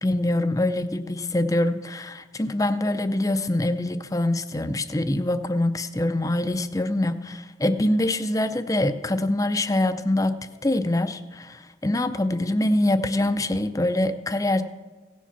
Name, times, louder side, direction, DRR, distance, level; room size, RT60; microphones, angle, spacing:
voice 1, 0.0-10.3 10.6-14.6, left 1 dB, 20° left, 11 dB, 0.5 m, -24 dB
17.0 x 7.3 x 5.8 m, 1.3 s
head